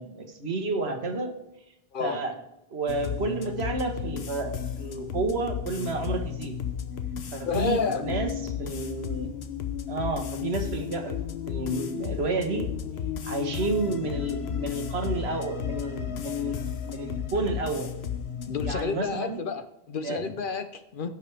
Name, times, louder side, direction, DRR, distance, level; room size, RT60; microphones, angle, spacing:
voice 1, 0.0-1.3 2.0-2.3 2.7-6.6 7.3-9.3 9.9-11.2 11.5-12.7 13.2-17.9 18.6-19.4 20.0-20.2, right 2 dB, 85° right, 6 dB, 1.6 m, -30 dB
sound 1, 2.9-18.8, left 8 dB, 90° left, 1.1 m, -34 dB
voice 2, 7.4-8.0 18.5-21.1, left 5 dB, 60° left, 10 dB, 0.9 m, -30 dB
16.5 x 6.6 x 3.4 m, 0.85 s
omnidirectional pair, 1.0 m